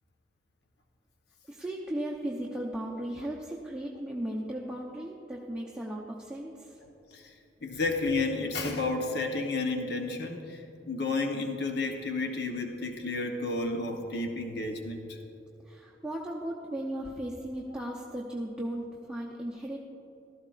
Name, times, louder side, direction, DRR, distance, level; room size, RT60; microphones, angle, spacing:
voice 1, 1.5-6.8 15.6-19.8, right 1 dB, 5° right, -4 dB, 0.7 m, -36 dB
voice 2, 7.6-15.2, left 3 dB, 60° left, 3 dB, 0.9 m, -31 dB
15.5 x 13.0 x 2.5 m, 2.9 s
head